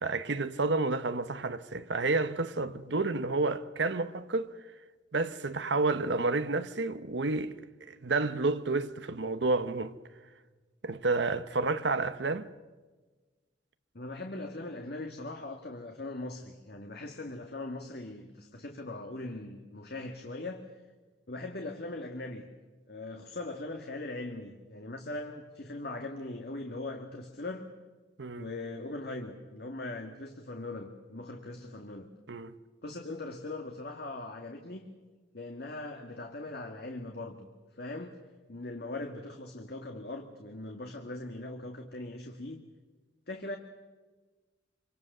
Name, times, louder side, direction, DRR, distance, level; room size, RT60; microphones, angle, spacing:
voice 1, 0.0-4.5 5.1-9.9 10.8-12.5 28.2-28.5 32.3-32.5, right 3 dB, 70° right, 1.0 m, -30 dB
voice 2, 13.9-20.6 21.3-22.5 22.9-27.7 28.4-32.1 32.8-35.0 35.3-37.5 37.7-38.2 38.5-42.6 43.3-43.6, left 2 dB, 60° left, 1.9 m, -40 dB
27.0 x 25.0 x 6.8 m
head